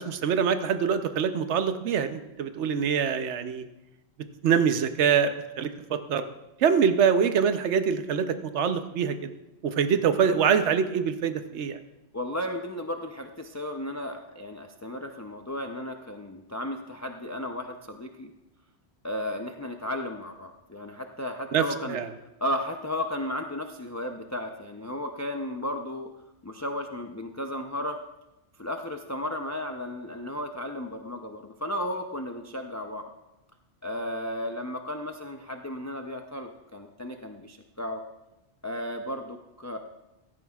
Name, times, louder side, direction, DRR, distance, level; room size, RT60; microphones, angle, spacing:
voice 1, 0.0-3.6 4.4-6.2 6.6-9.3 9.6-11.8 21.5-22.1, right 7 dB, 75° right, 9 dB, 1.0 m, -24 dB
voice 2, 12.1-18.3 19.0-22.0 22.4-26.1 26.4-28.0 28.6-33.1 33.8-38.0 38.6-39.8, left 1 dB, 25° left, 4 dB, 0.4 m, -34 dB
16.0 x 13.5 x 2.4 m, 0.97 s
omnidirectional pair, 1.2 m